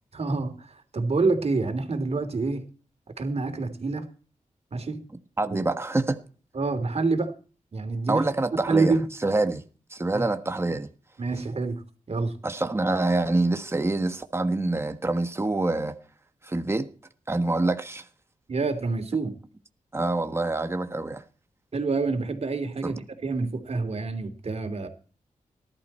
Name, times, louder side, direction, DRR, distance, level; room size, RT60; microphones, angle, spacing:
voice 1, 0.1-2.6 3.2-4.1 4.7-5.0 6.5-7.3 7.7-8.3 8.7-9.0 10.1-10.2 11.2-11.8 12.1-12.3 18.5-19.3 21.7-24.9, right 3 dB, 50° right, 3.2 m, -27 dB
voice 2, 5.4-6.2 8.1-8.9 9.2-9.6 9.9-10.9 12.4-16.0 16.4-16.9 17.3-18.0 19.9-21.2 22.8-22.9, right 2 dB, 20° right, 1.3 m, -26 dB
19.0 x 12.0 x 4.4 m
wide cardioid pair, 115°, 14 cm